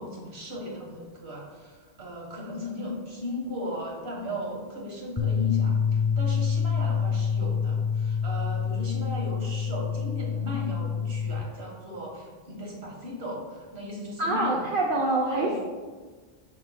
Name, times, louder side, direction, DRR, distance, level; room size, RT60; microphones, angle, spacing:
voice 1, 0.0-14.7 15.3-15.6, left 1 dB, 85° right, -2 dB, 1.9 m, -36 dB
sound 1, 5.2-11.4, left 6 dB, 15° left, 0.9 m, -27 dB
voice 2, 14.2-15.6, right 2 dB, 60° right, -2 dB, 0.9 m, -25 dB
8.3 x 5.5 x 2.3 m, 1.4 s
omnidirectional pair, 1.0 m